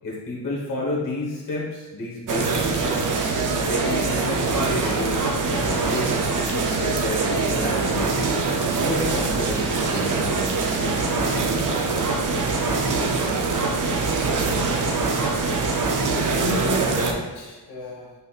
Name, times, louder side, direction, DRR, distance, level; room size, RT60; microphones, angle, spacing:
voice 1, 0.0-3.1 3.6-8.3 8.8-12.0 12.7-12.8, left 1 dB, 55° left, -4 dB, 1.2 m, -31 dB
sound 1, 2.3-17.1, right 4 dB, 50° right, 0.6 m, -23 dB
voice 2, 13.2-14.6 16.2-18.1, left 2 dB, 80° left, -4 dB, 1.2 m, -34 dB
5.4 x 4.0 x 2.3 m, 1.2 s
wide cardioid pair, 150°, 40 cm